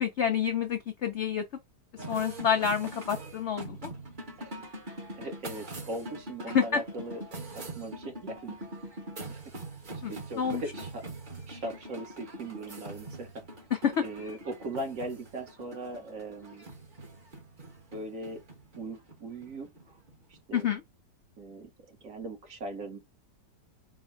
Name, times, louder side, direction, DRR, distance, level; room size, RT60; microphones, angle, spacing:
voice 1, 0.0-1.4 2.1-3.8 6.5-6.8 10.0-10.6 13.8-14.0 20.5-20.8, left 7 dB, 75° left, 0.6 m, -28 dB
sound 1, 2.0-20.6, right 1 dB, 30° right, 1.1 m, -43 dB
voice 2, 5.1-7.2 7.5-8.6 9.3-9.4 10.0-11.0 11.5-13.4 14.0-16.7 17.9-18.4 18.8-20.0 20.3-20.6 21.4-23.0, right 2 dB, 55° right, 1.3 m, -39 dB
4.5 x 2.2 x 4.4 m
omnidirectional pair, 1.9 m